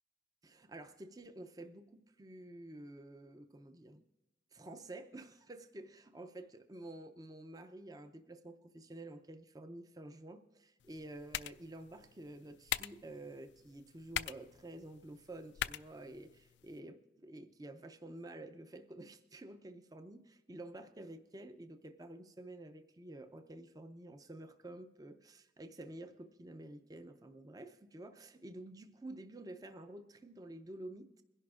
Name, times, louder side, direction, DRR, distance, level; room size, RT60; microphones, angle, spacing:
voice 1, 0.4-4.0 4.5-31.2, right 1 dB, 20° right, 8 dB, 0.5 m, -50 dB
sound 1, 10.8-16.8, left 11 dB, 70° left, 0.3 m, -44 dB
22.5 x 11.0 x 2.4 m, 1.1 s
head